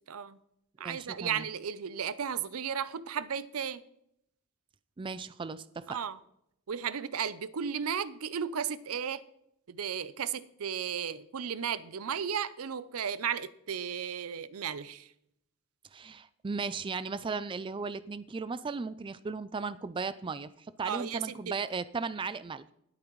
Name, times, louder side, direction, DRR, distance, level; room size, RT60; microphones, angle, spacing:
voice 1, 0.1-0.4 0.8-3.8 5.9-6.2 6.7-9.2 9.7-15.1 20.8-21.5, right 7 dB, 75° right, 0.6 m, -34 dB
voice 2, 0.8-1.4 5.0-6.0 15.9-22.7, right 4 dB, 25° right, 0.3 m, -36 dB
19.5 x 8.7 x 3.1 m
head